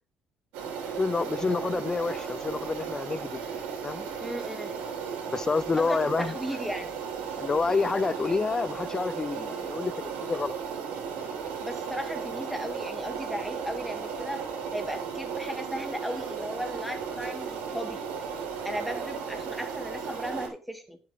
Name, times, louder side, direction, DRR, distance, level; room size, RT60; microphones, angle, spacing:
sound 1, 0.5-20.5, right 6 dB, 90° right, 3.9 m, -35 dB
voice 1, 1.0-4.1 5.3-6.3 7.4-10.6, left 4 dB, 25° left, 0.5 m, -28 dB
voice 2, 4.2-4.8 5.8-7.0 11.6-18.0 18.6-21.0, equal, ahead, 2.4 m, -36 dB
10.0 x 7.9 x 3.5 m
supercardioid pair, 90°, 2 cm